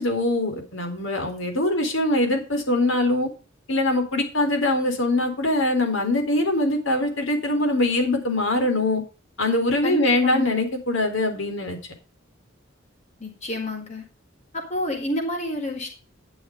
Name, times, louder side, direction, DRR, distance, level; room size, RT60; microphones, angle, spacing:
voice 1, 0.0-3.3 3.7-9.0 9.4-11.8, left 2 dB, 80° left, 5 dB, 4.0 m, -23 dB
voice 2, 9.8-10.6 13.2-14.0 14.5-15.9, left 1 dB, 35° left, 2 dB, 4.4 m, -29 dB
11.5 x 7.1 x 5.3 m, 0.34 s
head